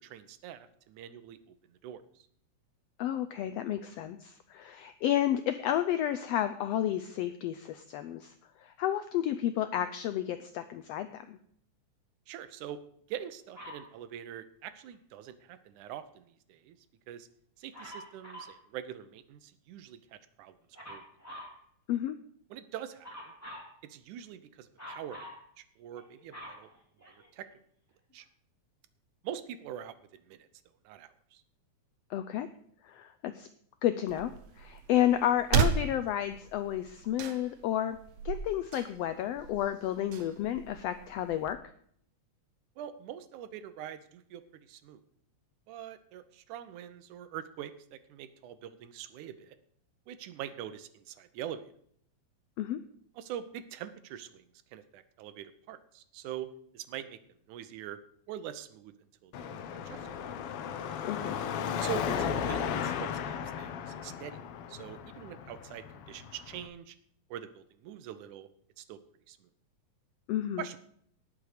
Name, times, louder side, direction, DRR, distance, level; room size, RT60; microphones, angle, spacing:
voice 1, 0.0-2.3 12.3-12.8 13.1-16.8 17.1-17.3 17.6-20.6 20.9-21.0 22.5-23.1 23.8-26.7 27.0-27.5 28.1-28.3 29.2-30.5 30.9-31.4 42.8-45.0 45.7-49.6 50.1-51.7 53.2-54.4 54.7-57.2 57.5-58.0 58.3-60.2 61.8-63.2 63.6-64.4 64.7-67.0 67.3-68.5 68.8-69.0 69.3-69.5 70.6-70.8, right 10 dB, 85° right, 12 dB, 2.3 m, -44 dB
voice 2, 3.0-8.3 8.6-11.4 21.9-22.1 32.1-32.5 32.8-33.5 33.8-34.3 34.6-38.0 38.2-41.6 52.6-52.8 61.1-61.4 70.3-70.7, left 11 dB, 90° left, 10 dB, 1.4 m, -31 dB
Dog, 13.5-13.9 17.7-18.6 20.7-21.6 23.0-23.7 24.8-25.4 25.9-27.5 28.2-28.3, equal, 5° left, 3.0 m, -46 dB
sound 1, 34.1-41.5, right 7 dB, 70° right, 1.8 m, -35 dB
Car passing by / Traffic noise roadway noise / Engine, 59.3-66.7, left 7 dB, 70° left, 1.4 m, -35 dB
19.0 x 6.3 x 5.0 m, 0.65 s
omnidirectional pair, 3.5 m